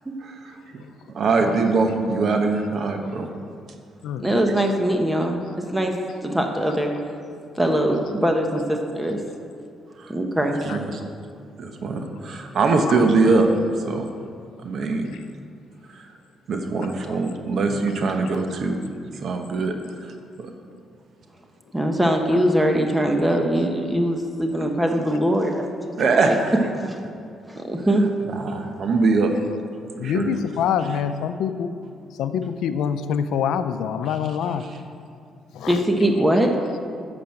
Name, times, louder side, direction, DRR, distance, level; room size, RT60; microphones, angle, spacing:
voice 1, 0.2-0.8 1.1-3.3 10.0-10.1 10.6-11.0 11.6-13.5 13.7-14.1 14.6-15.1 15.9-16.1 16.5-18.8 19.2-20.1 20.4-20.5 26.0-26.6 28.3-29.3 30.0-30.3, right 3 dB, 60° right, 4 dB, 1.0 m, -22 dB
voice 2, 4.2-6.9 7.6-9.2 10.1-10.6 21.7-26.4 26.9-27.0 27.5-28.0 35.7-36.5, equal, 10° right, 3 dB, 1.0 m, -22 dB
voice 3, 30.0-31.7 32.2-34.7 35.5-35.8, left 8 dB, 85° left, 10 dB, 0.6 m, -26 dB
8.8 x 6.1 x 7.7 m, 2.4 s
cardioid pair, 90°, 0 cm